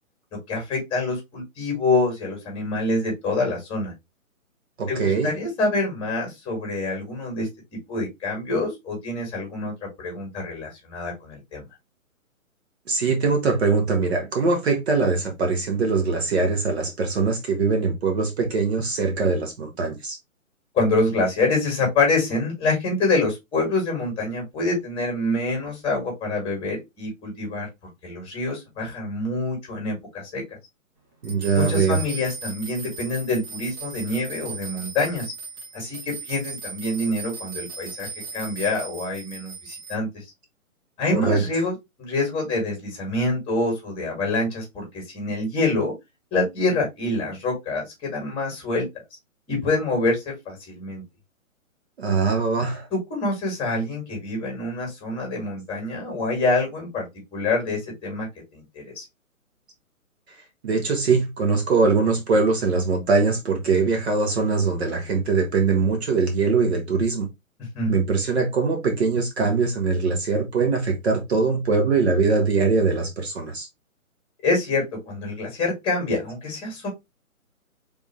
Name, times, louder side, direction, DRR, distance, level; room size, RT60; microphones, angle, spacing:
voice 1, 0.5-3.9 4.9-9.7 10.0-11.6 20.7-27.7 28.0-30.4 31.5-35.3 35.7-38.1 38.3-40.2 41.0-45.9 46.3-48.9 49.5-51.0 52.9-57.1 57.3-59.0 67.7-68.0 74.4-76.9, left 2 dB, 10° left, 2.0 m, -26 dB
voice 2, 4.8-5.3 12.9-20.2 31.2-32.0 41.1-41.4 52.0-52.9 60.6-67.3 67.9-73.7, right 4 dB, 50° right, 1.2 m, -22 dB
sound 1, 31.2-39.9, right 5 dB, 30° right, 1.6 m, -38 dB
3.6 x 3.4 x 3.0 m
hypercardioid pair, 145°, 42 cm